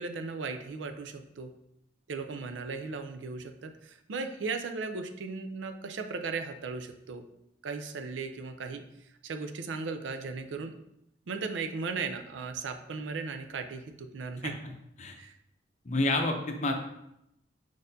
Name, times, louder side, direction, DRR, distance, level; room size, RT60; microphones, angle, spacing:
voice 1, 0.0-1.5 2.1-7.2 7.6-8.8 9.2-10.7 11.3-14.6 15.2-15.4, right 4 dB, 85° right, 7 dB, 0.5 m, -36 dB
voice 2, 14.4-14.7 15.0-15.2 15.8-16.7, left 2 dB, 40° left, 4 dB, 0.6 m, -29 dB
4.8 x 4.1 x 2.7 m, 0.81 s
head